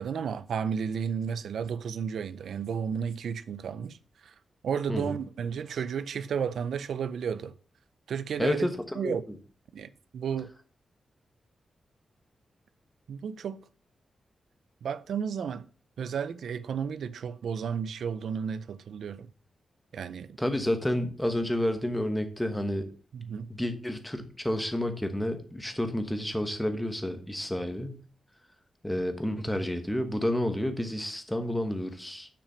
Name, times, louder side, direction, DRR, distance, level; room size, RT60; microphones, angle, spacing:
voice 1, 0.0-4.3 4.6-7.5 8.1-8.7 9.0-9.2 9.7-10.5 13.1-13.6 14.8-15.7 16.0-19.3 19.9-20.4 23.1-23.5, right 7 dB, 90° right, 0.5 m, -33 dB
voice 2, 8.4-9.4 20.4-22.9 23.5-28.0 28.8-32.3, left 1 dB, 5° left, 1.2 m, -30 dB
7.1 x 5.9 x 5.1 m
wide cardioid pair, 130°, 0 cm